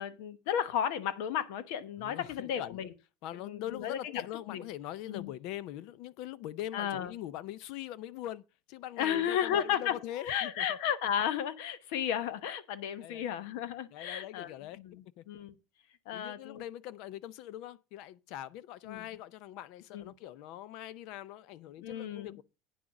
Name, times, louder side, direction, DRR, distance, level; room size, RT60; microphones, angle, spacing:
voice 1, 0.0-2.9 3.3-4.7 5.1-5.3 6.7-7.1 9.0-15.5 16.1-16.6 18.8-19.1 19.9-20.1 21.8-22.4, left 9 dB, 75° left, 1.0 m, -34 dB
voice 2, 2.0-2.8 3.2-8.4 8.7-10.8 13.0-13.3 13.9-14.8 15.2-15.3 16.1-22.4, left 13 dB, 60° left, 0.5 m, -42 dB
9.3 x 6.2 x 5.9 m
cardioid pair, 155°, 0 cm